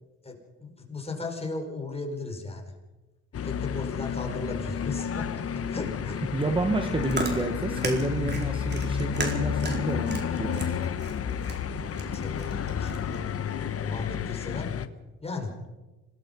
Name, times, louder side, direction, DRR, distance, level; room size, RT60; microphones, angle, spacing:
voice 1, 0.2-2.6 3.4-5.4 5.7-6.2 7.9-8.0 11.9-13.2 13.8-14.7 15.2-15.5, left 3 dB, 20° left, 2 dB, 5.4 m, -36 dB
sound 1, 3.3-14.9, left 7 dB, 50° left, 1.2 m, -31 dB
voice 2, 6.3-10.9, right 2 dB, 15° right, 5 dB, 1.8 m, -30 dB
Chewing mastication, 6.7-13.2, right 2 dB, 35° right, 4.4 m, -37 dB
26.5 x 19.5 x 5.5 m, 1.1 s
cardioid pair, 90°, 30 cm